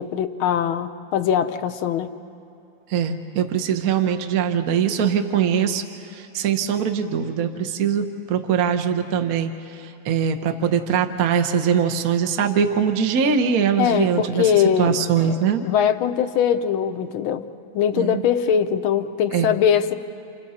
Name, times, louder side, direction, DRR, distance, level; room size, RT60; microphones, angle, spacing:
voice 1, 0.0-2.1 13.8-15.4 15.6-17.4 17.7-19.9, left 8 dB, 75° left, 7 dB, 1.6 m, -21 dB
voice 2, 2.9-5.8 6.1-9.5 9.8-14.5 14.8-15.6 17.9-18.2 19.3-19.5, right 7 dB, 50° right, 6 dB, 1.3 m, -22 dB
30.0 x 28.0 x 4.2 m, 2.7 s
omnidirectional pair, 2.3 m